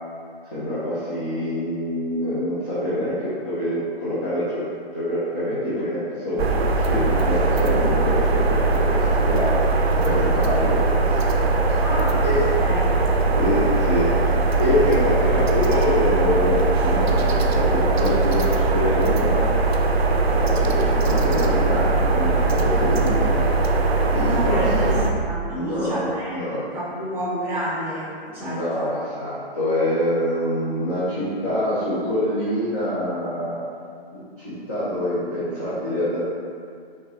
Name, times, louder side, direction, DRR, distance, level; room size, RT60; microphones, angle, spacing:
voice 1, 0.5-4.6 4.9-9.6 10.0-11.1 11.4-11.8 12.2-12.4 13.4-14.1 14.6-16.6 16.8-19.5 20.2-23.4 24.1-24.6 25.5-26.6 28.3-33.6 34.1-36.2, left 1 dB, 15° left, -12 dB, 0.3 m, -25 dB
sound 1, 6.4-25.1, right 3 dB, 80° right, 0.5 m, -20 dB
voice 2, 11.8-12.2 12.6-12.9 24.2-25.0 25.2-28.9, equal, 5° right, -10 dB, 0.9 m, -30 dB
4.4 x 2.7 x 2.6 m, 2.3 s
figure-of-eight pair, 135°, 31 cm